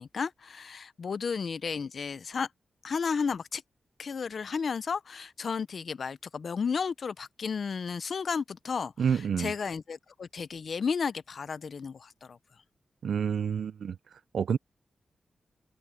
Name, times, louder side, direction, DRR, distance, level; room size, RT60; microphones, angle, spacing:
voice 1, 0.0-2.5 2.8-3.6 4.0-8.9 9.4-12.4, left 5 dB, 60° left, 0.5 m, -33 dB
voice 2, 9.0-9.5 13.0-14.0 14.3-14.6, right 7 dB, 90° right, 0.4 m, -28 dB
wide cardioid pair, 120°, 0 cm